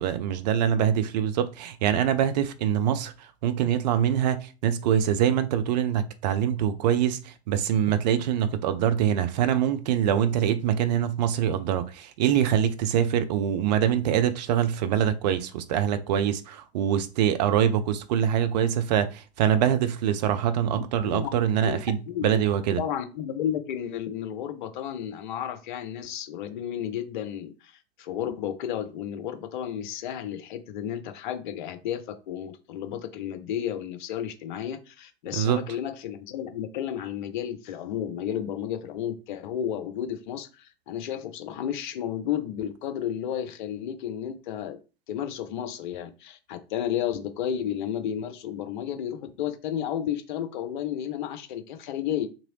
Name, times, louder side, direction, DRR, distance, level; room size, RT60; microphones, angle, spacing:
voice 1, 0.0-22.8 35.3-35.6, right 9 dB, 40° right, 0.4 m, -24 dB
voice 2, 20.7-21.3 21.6-21.8 22.1-22.4 22.8-27.7 28.0-44.8 45.1-52.3, left 10 dB, 45° left, 0.6 m, -32 dB
2.9 x 2.6 x 2.8 m
figure-of-eight pair, 95°, 33 cm